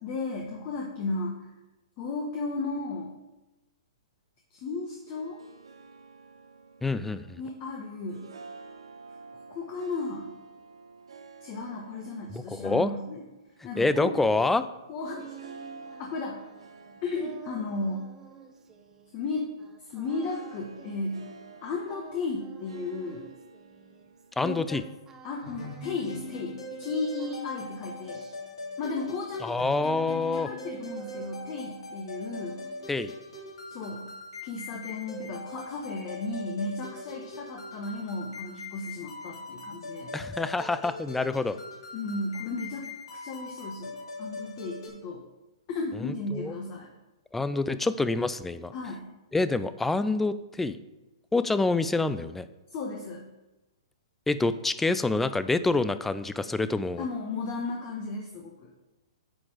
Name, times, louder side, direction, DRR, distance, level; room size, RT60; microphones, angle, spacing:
voice 1, 0.0-1.5 2.0-3.1 4.5-5.4 7.4-8.3 9.5-10.3 11.4-13.2 13.6-14.1 14.9-15.2 16.0-16.4 17.0-18.1 19.1-19.5 19.8-21.2 21.6-23.2 24.4-24.8 25.2-28.2 28.8-29.6 30.4-32.6 33.7-34.1 34.4-40.1 41.9-42.9 43.2-45.2 45.7-46.9 48.7-49.1 52.7-53.3 57.0-58.7, left 3 dB, 40° left, 0 dB, 1.0 m, -34 dB
Harp, 4.8-24.7, right 4 dB, 75° right, 0.8 m, -51 dB
voice 2, 6.8-7.4 12.3-12.9 13.8-14.7 24.4-24.8 29.4-30.5 32.9-33.1 40.1-41.6 46.0-46.5 47.3-48.7 49.3-50.8 51.3-52.5 54.3-57.0, left 3 dB, 5° left, 13 dB, 0.4 m, -27 dB
sound 1, 14.7-24.6 25.0-26.9 27.2-30.7 30.9-32.0 32.2-33.2, right 6 dB, 15° right, 0.8 m, -52 dB
sound 2, 25.4-44.9, left 2 dB, 70° left, 2.5 m, -41 dB
9.0 x 4.3 x 4.9 m, 1.0 s
hypercardioid pair, 120°, 3 cm